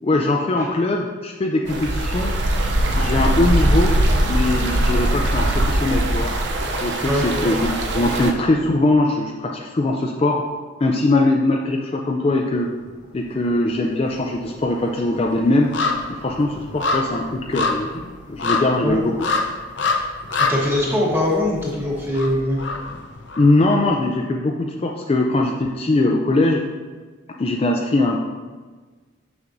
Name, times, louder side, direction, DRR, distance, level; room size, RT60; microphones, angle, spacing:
voice 1, 0.0-2.3 2.9-4.0 4.3-6.3 6.8-10.4 10.8-12.7 13.1-15.7 16.1-19.1 23.4-26.6 27.4-28.2, left 2 dB, 30° left, 2 dB, 0.3 m, -21 dB
sound 1, 1.7-8.3, right 1 dB, 60° right, 0.6 m, -21 dB
sound 2, 12.8-13.5 13.8-23.8 24.2-24.3, left 3 dB, 65° left, 0.6 m, -27 dB
voice 2, 20.4-22.6, left 1 dB, 10° right, -4 dB, 1.1 m, -22 dB
6.5 x 6.0 x 2.6 m, 1.4 s
head